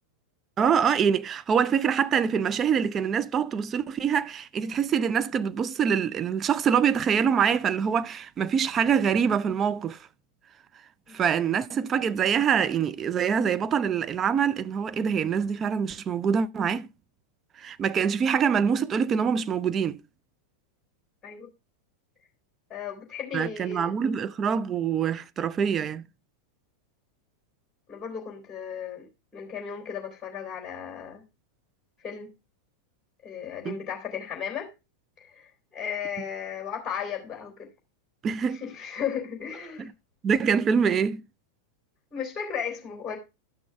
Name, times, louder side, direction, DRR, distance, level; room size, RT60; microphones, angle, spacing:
voice 1, 0.6-10.0 11.1-16.9 17.6-20.0 23.3-26.0 33.7-33.8 38.2-38.6 39.8-39.9 40.2-41.2, right 7 dB, 25° right, 0.5 m, -25 dB
voice 2, 22.7-23.9 27.9-31.2 32.0-32.3 33.2-34.7 35.2-37.7 38.5-39.9 42.1-43.2, left 7 dB, 15° left, 3.5 m, -35 dB
12.0 x 6.2 x 3.4 m
figure-of-eight pair, 90°, 0 cm